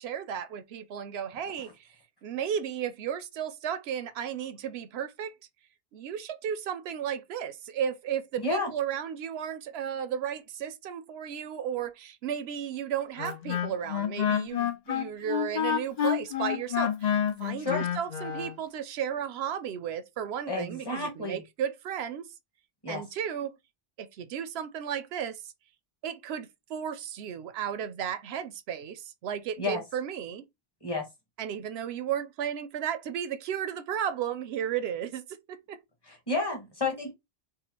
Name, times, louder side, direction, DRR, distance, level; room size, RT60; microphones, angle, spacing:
voice 1, 0.0-1.9 2.2-5.3 5.9-22.3 22.9-23.5 24.0-25.5 26.0-30.4 31.4-35.8, right 9 dB, 85° right, 0.8 m, -34 dB
voice 2, 8.4-8.7 17.6-17.9 20.5-21.4 22.8-23.0 29.6-29.8 30.8-31.1 36.1-37.1, left 3 dB, 25° left, 1.3 m, -31 dB
Wind instrument woodwind instrument, 13.2-18.5, left 9 dB, 50° left, 0.6 m, -29 dB
4.8 x 2.2 x 2.9 m
omnidirectional pair, 1.0 m